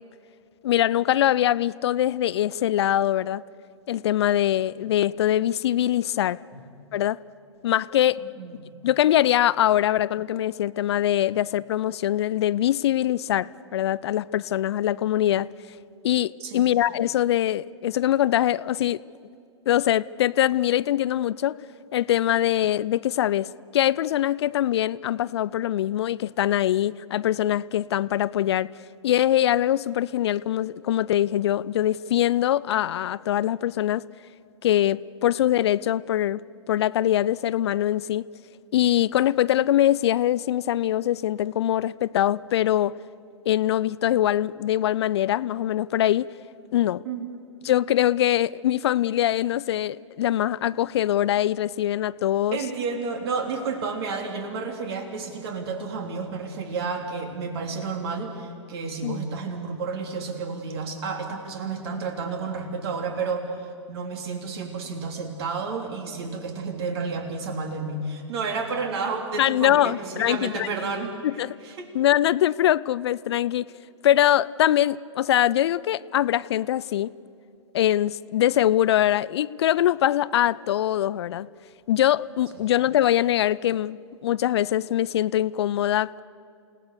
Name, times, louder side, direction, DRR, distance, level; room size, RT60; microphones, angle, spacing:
voice 1, 0.6-3.4 3.9-6.4 6.9-7.2 7.6-8.2 8.8-15.5 16.0-19.0 19.7-21.6 21.9-28.7 29.0-34.1 34.6-36.4 36.7-38.3 38.7-43.0 43.5-46.3 46.7-47.0 47.6-52.6 59.0-59.2 69.4-70.7 71.2-71.6 71.9-73.7 74.0-77.1 77.7-81.5 81.9-86.2, left 12 dB, 60° left, 0.5 m, -23 dB
voice 2, 8.2-8.6 16.4-16.7 47.0-47.3 52.5-71.9 82.5-82.6, right 4 dB, 55° right, 3.7 m, -31 dB
28.5 x 18.0 x 6.8 m
figure-of-eight pair, 115°, 16 cm